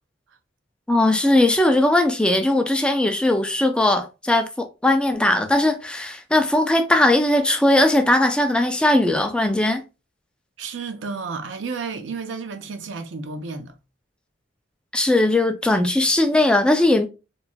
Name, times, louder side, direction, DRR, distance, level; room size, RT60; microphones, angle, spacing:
voice 1, 0.9-9.8 14.9-17.1, left 1 dB, 5° left, 0.3 m, -19 dB
voice 2, 10.6-13.7, right 4 dB, 75° right, 0.5 m, -32 dB
3.0 x 2.4 x 2.3 m
head